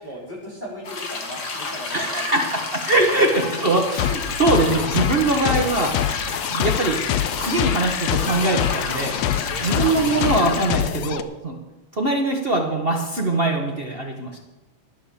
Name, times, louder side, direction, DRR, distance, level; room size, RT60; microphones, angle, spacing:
voice 1, 0.0-2.6 3.1-3.4, equal, 15° left, -5 dB, 5.1 m, -38 dB
sound 1, 0.8-10.9, left 3 dB, 40° left, 1.8 m, -31 dB
voice 2, 1.9-2.4 2.9-6.0 6.5-7.1 7.4-9.2 9.6-11.6 11.9-14.4, right 2 dB, 65° right, 1 dB, 0.5 m, -22 dB
sound 2, 3.4-5.5 8.3-10.6, left 5 dB, 60° left, 2.7 m, -41 dB
sound 3, 4.0-11.2, left 10 dB, 75° left, 1.7 m, -25 dB
12.5 x 10.5 x 7.0 m, 1.1 s
omnidirectional pair, 3.4 m